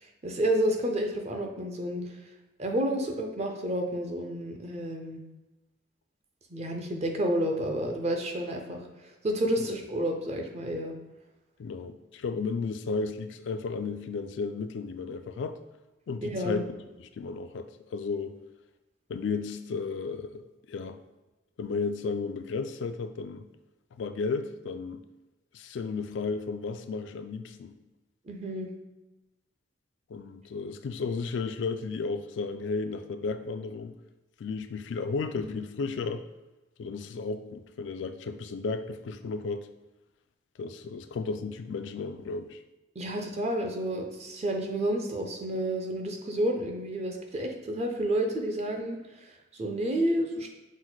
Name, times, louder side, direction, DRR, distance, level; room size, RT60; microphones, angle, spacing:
voice 1, 0.2-2.2 2.6-5.2 6.5-10.9 16.2-16.7 28.3-28.7 43.0-50.6, right 1 dB, 35° right, 3 dB, 0.6 m, -30 dB
voice 2, 11.6-15.6 16.1-16.6 17.1-18.4 19.1-21.0 21.6-23.5 23.9-25.0 25.5-27.8 30.1-34.0 34.4-36.2 36.8-39.7 40.6-42.6, left 4 dB, 70° left, 9 dB, 0.3 m, -33 dB
6.1 x 2.1 x 4.0 m, 1.0 s
head